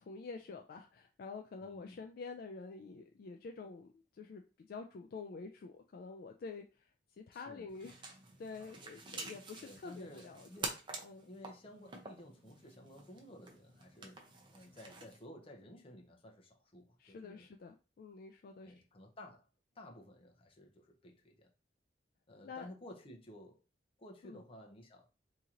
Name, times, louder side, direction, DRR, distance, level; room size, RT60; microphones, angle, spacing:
voice 1, 0.0-8.1 8.4-10.7 11.0-11.3 17.0-18.7 22.4-22.7 24.2-24.4, left 4 dB, 55° left, 0.3 m, -48 dB
voice 2, 1.6-2.0 7.3-7.7 9.6-10.8 11.3-14.2 14.5-17.5 18.6-19.5 19.7-21.5 22.3-23.6 24.0-25.1, left 1 dB, 30° left, 0.7 m, -54 dB
sound 1, 7.7-15.2, right 3 dB, 25° right, 0.6 m, -48 dB
2.9 x 2.8 x 3.7 m
head